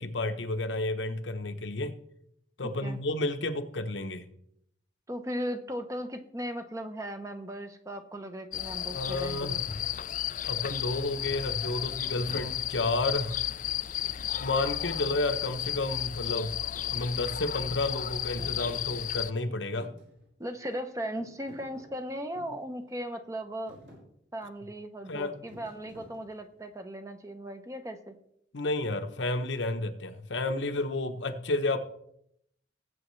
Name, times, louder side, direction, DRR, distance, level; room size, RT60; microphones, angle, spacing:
voice 1, 0.0-1.9 2.6-4.2 8.9-9.5 10.4-13.4 14.4-16.6 16.9-19.9 25.1-25.3 28.5-31.8, left 2 dB, 75° left, 7 dB, 1.0 m, -31 dB
voice 2, 2.6-3.0 5.1-9.6 20.4-23.8 24.3-28.1, equal, 15° right, 7 dB, 0.9 m, -37 dB
sound 1, 8.5-19.3, left 11 dB, 45° left, 0.4 m, -33 dB
Thump thud, 16.7-16.9 18.3-19.4 19.8-20.8 21.2-22.6 23.2-23.4 23.7-24.0 25.5-26.6, equal, 60° right, 5.5 m, -50 dB
19.5 x 7.7 x 3.2 m, 0.74 s
head